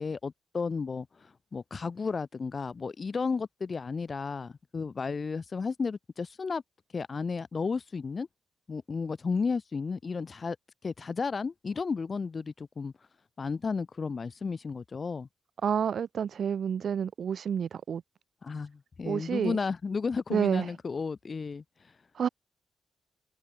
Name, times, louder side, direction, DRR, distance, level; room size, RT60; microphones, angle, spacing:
voice 1, 0.0-6.6 6.9-8.3 8.7-10.6 10.8-12.9 13.4-15.3 18.4-21.6, left 5 dB, 30° left, 2.0 m, -33 dB
voice 2, 15.6-18.0 19.1-19.6 20.3-20.7 22.1-22.3, right 7 dB, 50° right, 0.5 m, -29 dB
open air
wide cardioid pair, 160°, 0 cm